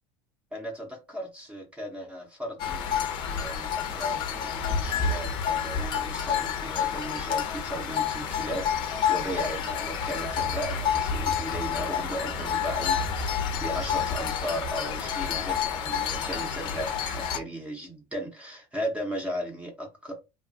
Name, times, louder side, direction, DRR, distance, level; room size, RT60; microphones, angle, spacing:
voice 1, 0.5-20.2, equal, 10° right, 0.7 m, -36 dB
sound 1, 2.6-17.4, left 7 dB, 50° left, 0.6 m, -29 dB
2.8 x 2.3 x 2.5 m
supercardioid pair, 125°, 10 cm